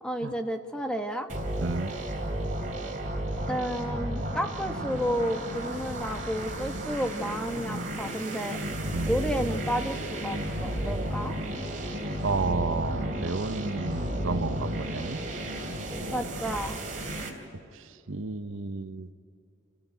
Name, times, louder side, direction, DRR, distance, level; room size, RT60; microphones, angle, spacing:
voice 1, 0.0-1.3 3.5-8.6 9.0-11.3 16.1-16.8, equal, 5° left, 5 dB, 1.2 m, -31 dB
sound 1, 1.3-17.3, right 1 dB, 40° right, 3.1 m, -33 dB
voice 2, 1.6-1.9 8.9-9.2 12.2-15.2 17.7-19.1, right 4 dB, 80° right, 12 dB, 0.8 m, -32 dB
28.0 x 15.0 x 9.2 m, 2.7 s
head